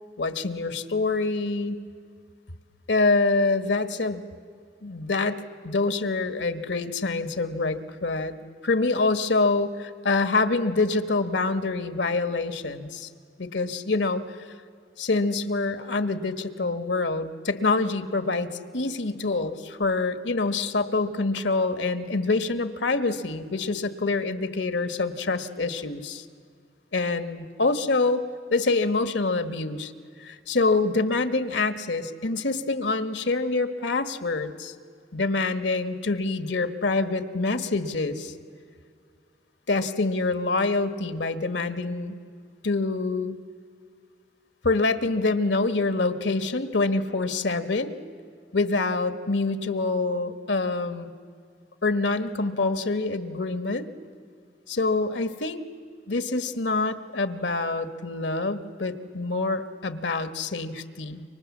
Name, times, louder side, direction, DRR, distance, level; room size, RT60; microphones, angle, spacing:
voice 1, 0.2-1.8 2.9-4.2 4.8-8.4 8.6-13.1 13.4-14.2 15.0-26.2 26.9-28.2 28.5-29.9 30.2-34.7 35.1-38.3 39.7-42.2 42.6-43.4 44.6-48.0 48.5-51.1 51.8-53.9 54.7-55.6 56.1-61.2, left 3 dB, 90° left, 10 dB, 1.4 m, -26 dB
30.0 x 25.0 x 7.4 m, 2.2 s
head